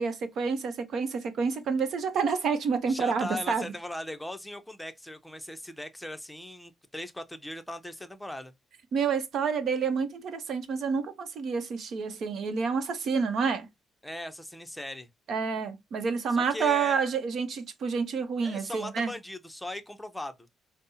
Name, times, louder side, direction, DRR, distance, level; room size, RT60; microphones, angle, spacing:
voice 1, 0.0-3.7 8.9-13.7 15.3-19.1, right 5 dB, 65° right, 0.8 m, -28 dB
voice 2, 2.9-8.5 14.0-15.1 16.3-17.1 18.4-20.3, left 1 dB, 5° left, 0.6 m, -39 dB
5.2 x 2.0 x 2.7 m
cardioid pair, 90°, 0 cm